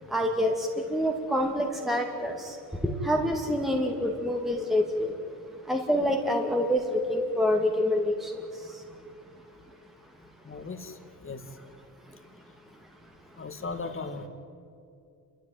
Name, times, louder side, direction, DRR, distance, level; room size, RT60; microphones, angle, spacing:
voice 1, 0.1-5.2 5.6-9.1 9.7-9.8 12.0-12.5 13.0-13.1, left 1 dB, ahead, 2 dB, 2.4 m, -27 dB
voice 2, 10.4-11.6 13.3-14.3, left 3 dB, 25° left, 6 dB, 2.4 m, -38 dB
29.0 x 14.0 x 9.3 m, 2.7 s
supercardioid pair, 80°, 48 cm